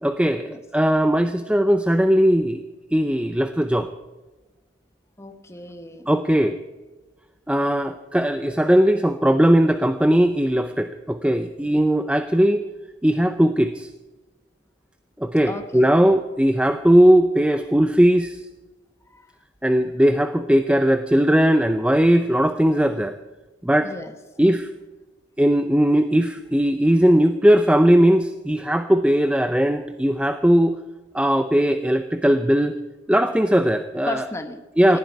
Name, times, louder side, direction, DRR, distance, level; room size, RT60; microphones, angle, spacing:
voice 1, 0.0-2.6 2.9-3.9 6.1-6.6 7.5-12.6 13.0-13.9 15.2-18.4 19.6-23.1 23.6-23.9 24.4-24.7 25.4-30.7 31.1-32.8 33.1-34.2 34.8-35.0, equal, 5° right, 9 dB, 0.6 m, -18 dB
voice 2, 5.2-6.1 15.5-15.9 19.1-19.3 23.8-24.1 34.1-34.6 34.9-35.0, left 1 dB, 15° left, 7 dB, 1.2 m, -34 dB
19.0 x 14.5 x 4.8 m, 1.2 s
head